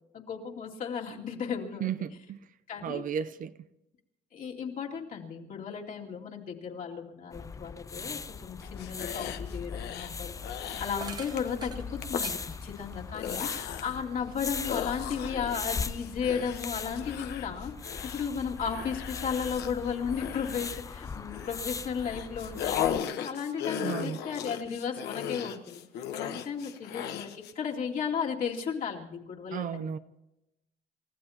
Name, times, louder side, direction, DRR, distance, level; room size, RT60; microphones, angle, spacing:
voice 1, 0.1-2.1 2.7-3.0 4.3-10.4 10.6-17.7 18.1-30.0, left 6 dB, 55° left, 2.5 m, -35 dB
voice 2, 1.8-2.4 2.8-3.5 23.7-24.2 29.5-30.0, right 8 dB, 55° right, 0.7 m, -33 dB
sound 1, 7.3-23.0, left 5 dB, 20° left, 0.4 m, -39 dB
sound 2, 8.6-10.1 10.4-10.9 11.4-11.6 12.0-12.2 12.9-14.0 14.6-21.6 22.0-27.5, left 9 dB, 75° left, 1.2 m, -37 dB
sound 3, 10.9-14.9 15.3-16.5, right 4 dB, 25° right, 1.2 m, -48 dB
29.5 x 14.5 x 2.9 m
cardioid pair, 110°, 17 cm